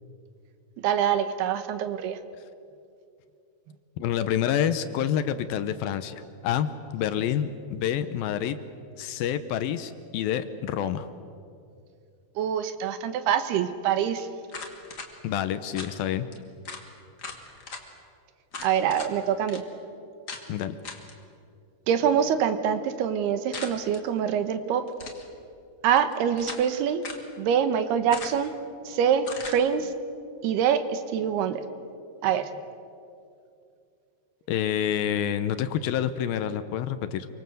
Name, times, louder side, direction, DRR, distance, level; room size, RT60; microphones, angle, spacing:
voice 1, 0.8-2.2 12.4-14.3 18.6-19.6 21.9-24.9 25.8-27.0 27.4-28.5 28.9-29.9 30.4-31.6 32.2-32.5, right 8 dB, 80° right, 10 dB, 3.2 m, -25 dB
voice 2, 4.0-8.6 9.0-11.1 15.2-16.3 20.5-20.8 34.5-37.3, left 10 dB, 75° left, 11 dB, 2.5 m, -28 dB
sound 1, 14.5-15.1 15.7-15.9 16.3-16.4 16.6-16.8 17.2-17.8 18.5-19.1 19.5-19.6 20.3-20.4 20.8-21.1 23.5-24.0 24.9-25.3 26.0-26.7 27.0-27.3 28.1-28.5 29.2-29.6, left 4 dB, 30° left, 2.2 m, -39 dB
27.0 x 24.0 x 7.9 m, 2.5 s
omnidirectional pair, 4.7 m